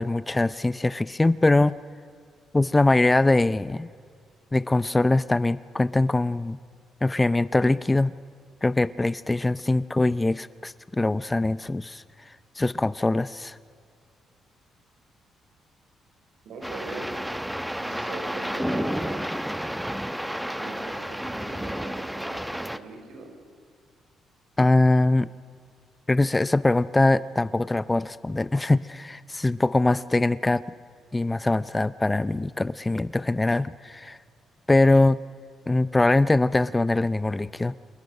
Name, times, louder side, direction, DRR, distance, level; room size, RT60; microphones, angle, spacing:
voice 1, 0.0-1.7 2.5-3.9 4.5-6.6 7.0-8.1 8.6-13.6 24.6-25.3 26.1-30.6 31.1-34.2 34.7-35.2 35.7-37.7, left 2 dB, 15° left, 17 dB, 0.5 m, -22 dB
voice 2, 16.4-17.1 17.8-19.3 20.5-23.3, right 3 dB, 70° right, 4 dB, 5.5 m, -41 dB
sound 1, 16.6-22.8, equal, 5° right, 0.9 m, -31 dB
28.5 x 20.0 x 6.6 m, 2.2 s
cardioid pair, 90°, 0 cm